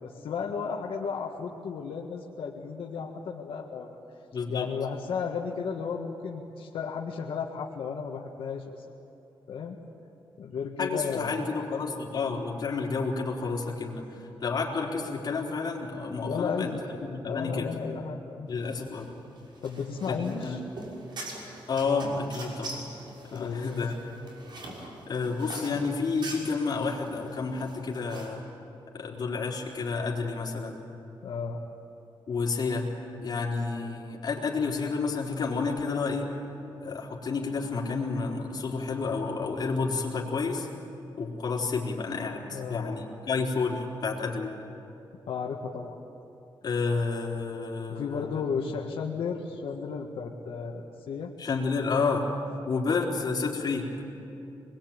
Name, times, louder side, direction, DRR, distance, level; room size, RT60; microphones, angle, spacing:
voice 1, 0.0-3.9 4.5-8.8 9.5-9.8 10.4-11.4 16.2-16.8 17.2-18.5 19.6-20.6 23.3-23.9 31.2-31.6 42.5-43.0 45.3-46.0 47.9-51.3, left 6 dB, 90° left, 0 dB, 1.7 m, -34 dB
voice 2, 4.3-4.7 10.8-16.7 17.0-17.7 18.5-19.1 20.1-20.6 21.7-22.8 23.2-23.9 25.1-28.4 28.9-30.8 32.3-32.9 33.2-36.3 36.8-40.7 41.2-44.5 46.6-48.4 51.4-52.3 52.7-54.1, left 4 dB, 50° left, -2 dB, 4.1 m, -30 dB
sound 1, 18.6-28.3, right 2 dB, 55° right, 6.2 m, -43 dB
25.5 x 21.5 x 9.0 m, 2.8 s
wide cardioid pair, 135°, 9 cm